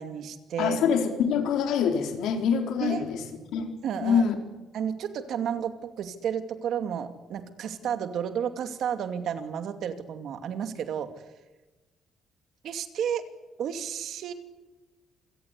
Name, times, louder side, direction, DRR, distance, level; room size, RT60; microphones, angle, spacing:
voice 1, 0.0-0.8 2.8-3.0 3.8-4.3 4.7-11.1 12.6-13.2 13.6-14.3, right 8 dB, 55° right, 9 dB, 2.4 m, -32 dB
voice 2, 0.6-3.2 3.5-3.7 4.0-4.4, left 7 dB, 75° left, 5 dB, 4.2 m, -25 dB
27.5 x 17.5 x 8.4 m, 1.1 s
cardioid pair, 165°, 0 cm